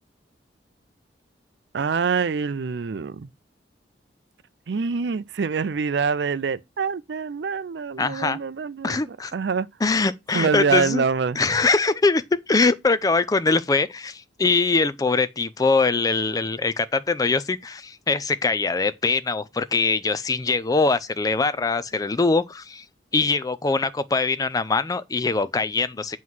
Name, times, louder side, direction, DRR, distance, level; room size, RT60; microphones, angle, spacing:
voice 1, 1.7-3.3 4.7-9.7 10.3-11.4, right 5 dB, 70° right, 0.4 m, -25 dB
voice 2, 8.0-8.4 8.8-9.3 9.8-11.0 11.4-22.8 23.1-26.2, left 3 dB, 20° left, 0.4 m, -22 dB
7.7 x 3.1 x 5.5 m
head